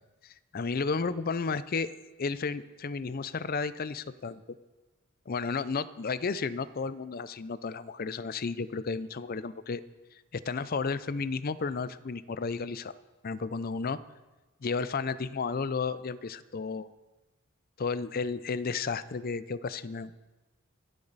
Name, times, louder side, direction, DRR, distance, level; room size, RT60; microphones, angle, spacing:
voice 1, 0.2-1.9 2.2-4.4 5.3-9.8 10.3-12.9 13.2-14.0 14.6-16.9 17.8-20.2, left 4 dB, 45° left, 15 dB, 0.5 m, -33 dB
25.5 x 8.7 x 4.1 m, 1.2 s
head